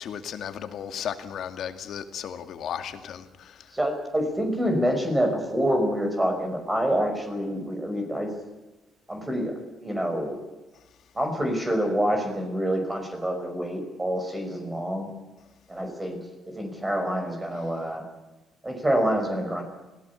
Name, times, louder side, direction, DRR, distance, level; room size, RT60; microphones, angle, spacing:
voice 1, 0.0-3.7, left 8 dB, 70° left, 7 dB, 2.2 m, -35 dB
voice 2, 3.7-8.3 9.1-10.4 11.1-15.1 15.7-16.2 16.5-18.0 18.6-19.6, equal, 15° right, 4 dB, 5.5 m, -27 dB
24.5 x 17.5 x 8.4 m, 1.1 s
cardioid pair, 90°, 0 cm